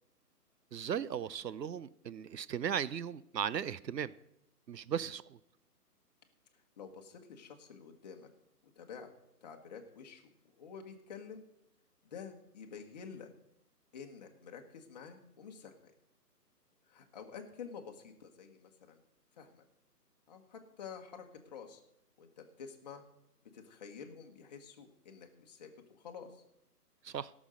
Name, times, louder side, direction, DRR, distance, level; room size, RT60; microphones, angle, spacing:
voice 1, 0.7-4.1 4.7-5.4 27.0-27.3, right 8 dB, 85° right, 18 dB, 0.8 m, -37 dB
voice 2, 6.8-8.3 8.8-9.1 9.4-10.2 10.6-11.4 12.1-13.3 13.9-15.9 16.9-19.0 19.4-19.6 20.3-21.8 22.2-23.0 23.5-25.7 26.0-26.4, left 6 dB, 25° left, 3 dB, 1.2 m, -49 dB
17.5 x 6.3 x 6.3 m, 0.80 s
hypercardioid pair, 155°, 48 cm